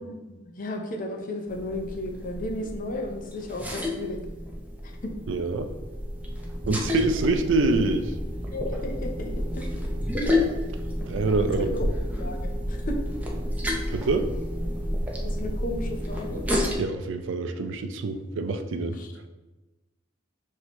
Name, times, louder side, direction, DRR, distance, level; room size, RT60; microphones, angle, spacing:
voice 1, 0.0-4.2 4.8-5.1 8.5-9.7 11.6-11.9 12.2-13.0 15.2-16.5 18.9-19.1, left 1 dB, 45° left, 3 dB, 0.6 m, -34 dB
sound 1, 1.5-16.8, left 1 dB, 10° right, 0.5 m, -30 dB
voice 2, 5.3-5.7 6.7-8.1 11.1-11.8 13.9-14.3 16.8-19.0, right 3 dB, 80° right, 8 dB, 0.4 m, -25 dB
6.1 x 2.7 x 3.0 m, 1.1 s
head